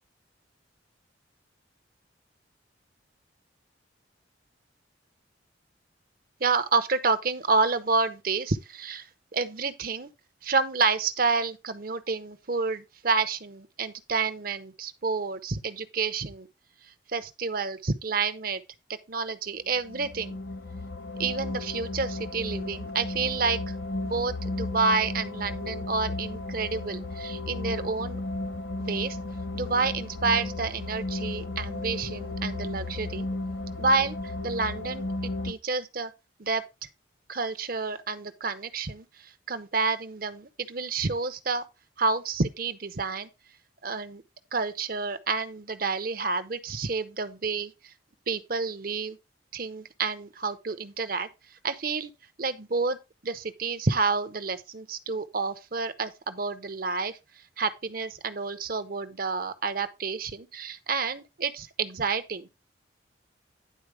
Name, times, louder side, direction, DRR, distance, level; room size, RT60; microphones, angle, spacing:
voice 1, 6.4-9.0 9.3-10.1 10.4-16.5 17.1-18.6 19.1-20.4 21.2-23.7 24.0-28.2 28.8-29.2 29.5-33.3 33.8-34.2 34.4-35.1 35.4-36.1 36.4-36.7 37.3-41.6 42.0-43.3 43.8-44.2 44.5-47.7 48.3-49.2 49.5-51.3 51.6-52.1 52.4-53.0 53.2-57.2 57.6-62.5, right 4 dB, 50° right, 0.8 m, -29 dB
sound 1, 19.7-35.5, left 2 dB, 65° left, 1.4 m, -34 dB
10.5 x 4.3 x 4.8 m
head